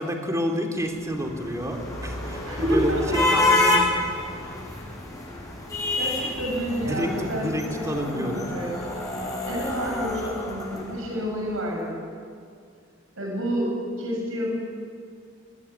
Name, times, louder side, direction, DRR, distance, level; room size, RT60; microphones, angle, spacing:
voice 1, 0.0-3.8 6.8-8.5, equal, 15° right, 3 dB, 3.1 m, -29 dB
sound 1, 1.0-11.3, left 2 dB, 20° left, 6.2 m, -28 dB
voice 2, 2.4-3.1 5.9-8.8 9.4-12.0 13.2-13.7 14.0-14.5, equal, 75° right, -1 dB, 7.5 m, -29 dB
22.5 x 19.5 x 9.8 m, 2.2 s
head